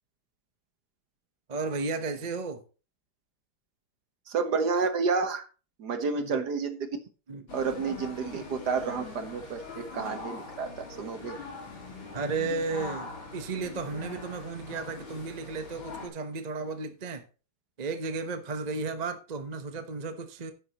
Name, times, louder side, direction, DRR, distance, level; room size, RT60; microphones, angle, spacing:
voice 1, 1.5-2.6 6.2-6.4 7.3-7.4 12.1-17.2 17.8-20.5, right 4 dB, 40° right, 0.6 m, -34 dB
voice 2, 4.3-5.4 5.8-6.9 7.5-11.4, right 5 dB, 55° right, 1.6 m, -30 dB
sound 1, 7.5-16.1, left 3 dB, 65° left, 3.7 m, -42 dB
10.5 x 9.6 x 3.0 m
omnidirectional pair, 2.4 m